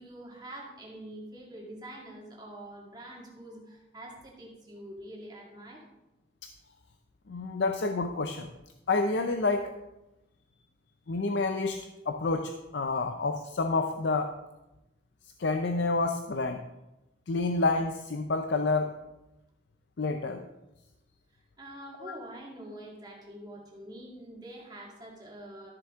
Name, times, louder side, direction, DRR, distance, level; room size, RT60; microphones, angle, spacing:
voice 1, 0.0-5.8 21.6-25.7, right 1 dB, 20° right, -2 dB, 1.9 m, -45 dB
voice 2, 7.3-8.5 8.9-9.7 11.1-14.3 15.4-16.6 17.3-18.9 20.0-20.5 22.0-22.2, left 3 dB, 70° left, 5 dB, 0.6 m, -29 dB
13.0 x 7.0 x 3.6 m, 0.98 s
head